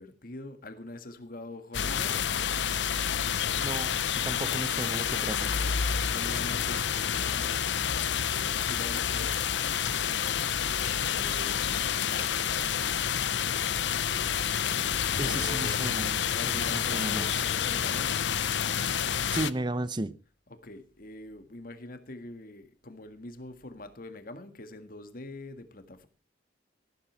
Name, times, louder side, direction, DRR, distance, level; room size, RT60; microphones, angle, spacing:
voice 1, 0.0-2.2 5.8-7.8 8.1-9.4 10.9-11.6 11.9-12.7 15.2-15.9 16.3-18.2 20.5-26.1, left 1 dB, 55° left, 1.7 m, -44 dB
sound 1, 1.7-19.5, left 8 dB, 90° left, 0.7 m, -29 dB
voice 2, 3.6-5.6 15.2-16.2 16.4-17.4 19.3-20.2, right 2 dB, 25° right, 0.8 m, -34 dB
14.5 x 12.5 x 4.5 m
head